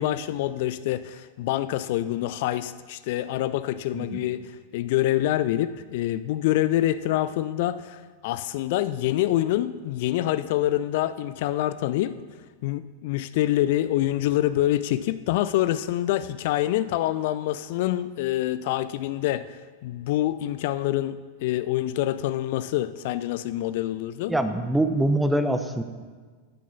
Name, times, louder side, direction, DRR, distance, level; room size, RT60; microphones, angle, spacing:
voice 1, 0.0-12.1 12.6-24.3, left 14 dB, 50° left, 14 dB, 0.3 m, -26 dB
voice 2, 3.9-4.2 24.3-25.8, right 1 dB, 5° right, 9 dB, 0.8 m, -24 dB
9.2 x 9.1 x 5.8 m, 1.5 s
figure-of-eight pair, 90°, 0 cm